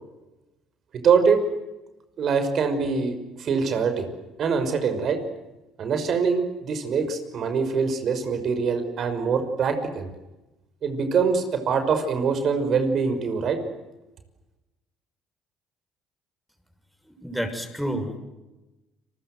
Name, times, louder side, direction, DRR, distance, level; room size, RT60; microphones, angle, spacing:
voice 1, 1.0-1.4 2.2-4.1 4.4-5.2 5.8-10.1 10.8-13.6, right 5 dB, 55° right, 8 dB, 5.8 m, -23 dB
voice 2, 17.2-18.2, equal, ahead, 6 dB, 6.6 m, -29 dB
29.5 x 22.0 x 8.0 m, 1.0 s
supercardioid pair, 65°, 0 cm